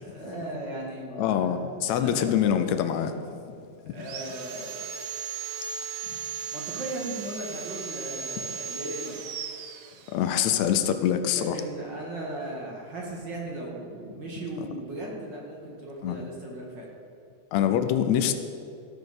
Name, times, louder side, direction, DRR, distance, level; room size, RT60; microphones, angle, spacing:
voice 1, 0.0-2.3 3.9-4.9 6.5-9.2 11.3-16.9, right 1 dB, 45° right, -2 dB, 2.0 m, -37 dB
voice 2, 1.2-3.2 10.1-11.6 16.0-16.2 17.5-18.3, left 9 dB, 75° left, 9 dB, 1.8 m, -24 dB
Sawing, 4.0-10.5, right 6 dB, 70° right, 1.7 m, -37 dB
14.5 x 6.4 x 6.7 m, 2.5 s
omnidirectional pair, 3.4 m